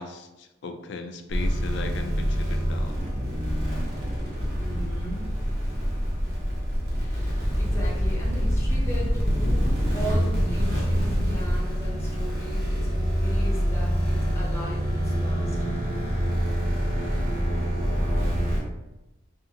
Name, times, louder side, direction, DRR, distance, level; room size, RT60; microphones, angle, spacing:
voice 1, 0.0-2.9, left 3 dB, 70° left, 6 dB, 0.3 m, -37 dB
sound 1, 1.3-18.6, equal, 55° right, 0.9 m, -25 dB
voice 2, 4.6-5.4 6.9-15.7, equal, 15° left, -4 dB, 0.6 m, -38 dB
2.5 x 2.5 x 2.7 m, 1.0 s
head